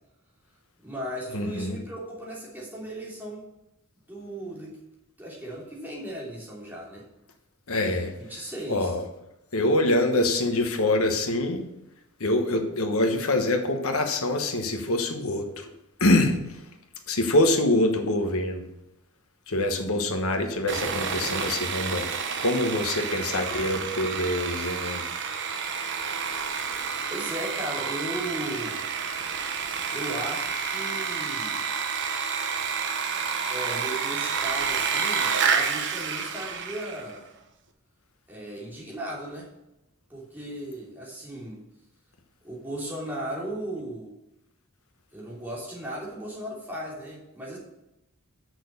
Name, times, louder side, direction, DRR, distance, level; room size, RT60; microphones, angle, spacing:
voice 1, 0.8-3.5 4.1-4.8 5.2-7.0 7.8-9.0 27.1-28.8 29.9-31.6 33.5-37.3 38.3-39.5 40.1-41.6 42.4-44.1 45.1-47.6, right 1 dB, 10° right, -5 dB, 2.9 m, -36 dB
voice 2, 1.3-1.8 7.7-8.1 8.7-9.0 9.5-11.6 12.2-15.7 16.0-16.4 17.1-18.7 19.5-22.1 22.4-25.1, left 1 dB, 75° left, 5 dB, 1.3 m, -25 dB
Sawing, 20.7-37.1, right 6 dB, 55° right, 0.9 m, -29 dB
6.8 x 6.3 x 6.6 m, 0.90 s
head